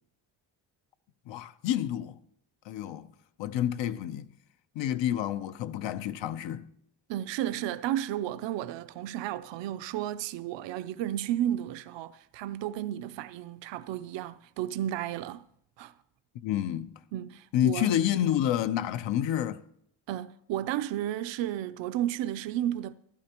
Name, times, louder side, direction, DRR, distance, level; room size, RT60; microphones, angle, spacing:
voice 1, 1.3-2.2 2.6-3.1 3.4-4.3 4.7-6.7 16.4-17.0 17.5-19.6, left 11 dB, 85° left, 0.7 m, -29 dB
voice 2, 7.1-15.4 15.8-15.9 17.1-17.9 20.1-22.9, right 12 dB, 80° right, 0.5 m, -33 dB
15.0 x 11.5 x 2.9 m
cardioid pair, 155°, 43 cm